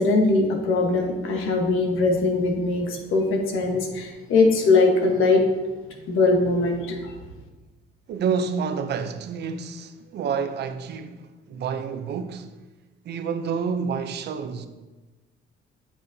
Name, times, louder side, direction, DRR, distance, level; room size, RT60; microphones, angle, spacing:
voice 1, 0.0-5.5 6.1-7.1, left 3 dB, 85° left, 1.3 m, -21 dB
voice 2, 8.1-12.5 13.0-14.7, right 6 dB, 55° right, 0.6 m, -29 dB
9.2 x 6.9 x 2.8 m
cardioid pair, 155°, 20 cm